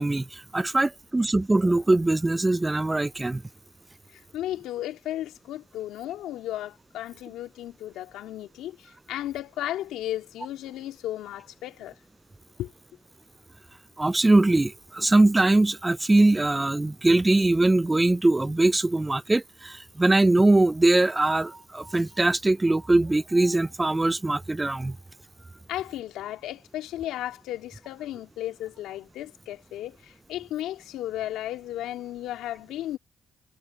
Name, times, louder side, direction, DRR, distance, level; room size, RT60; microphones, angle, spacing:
voice 1, 0.0-3.4 14.0-25.0, right 2 dB, 15° right, 0.4 m, -22 dB
voice 2, 4.1-12.0 12.6-12.7 25.7-33.0, left 13 dB, 90° left, 3.2 m, -34 dB
cardioid pair, 90°, 0 cm